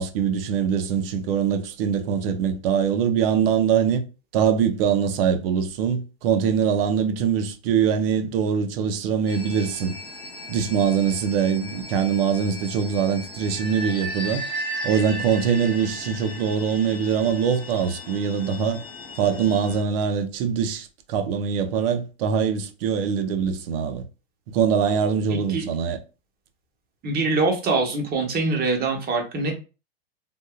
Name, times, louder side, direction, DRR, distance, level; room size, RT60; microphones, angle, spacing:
voice 1, 0.0-4.0 4.3-10.0 10.5-14.4 14.8-18.8 19.2-24.0 24.5-26.0, right 7 dB, 60° right, 0.7 m, -23 dB
sound 1, 9.3-19.8, equal, 15° left, 0.6 m, -36 dB
voice 2, 25.3-25.7 27.0-29.5, right 3 dB, 30° right, 1.1 m, -24 dB
3.6 x 2.5 x 2.3 m
hypercardioid pair, 115°, 32 cm